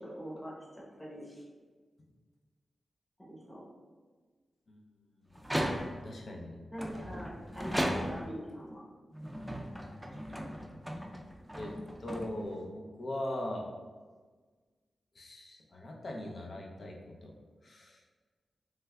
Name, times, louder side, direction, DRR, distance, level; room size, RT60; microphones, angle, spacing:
voice 1, 0.0-1.4 3.2-3.6 6.7-8.8 10.2-10.3, equal, 10° left, -5 dB, 0.9 m, -43 dB
sound 1, 5.4-6.2 6.8-8.4 9.1-12.7, equal, 10° right, 0.4 m, -37 dB
voice 2, 6.0-6.6 11.5-13.7 15.1-17.3 17.6-18.0, left 1 dB, 60° left, 0 dB, 0.6 m, -40 dB
3.2 x 3.2 x 2.3 m, 1.4 s
cardioid pair, 60°, 0 cm